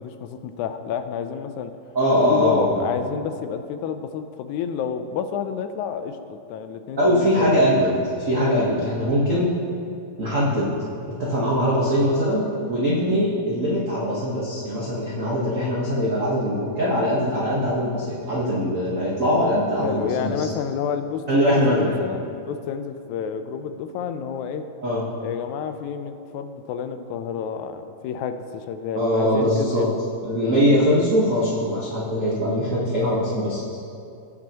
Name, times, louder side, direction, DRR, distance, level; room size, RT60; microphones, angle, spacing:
voice 1, 0.0-1.7 2.3-7.7 19.8-24.7 25.2-30.0, left 7 dB, 90° left, 9 dB, 2.0 m, -30 dB
voice 2, 1.9-2.8 7.0-7.9 8.3-9.5 10.2-10.8 11.1-12.4 12.7-20.5 21.3-22.0 24.8-25.0 28.9-29.8 30.2-33.6, equal, 85° right, -6 dB, 0.7 m, -21 dB
17.5 x 6.1 x 2.9 m, 2.5 s
omnidirectional pair, 3.3 m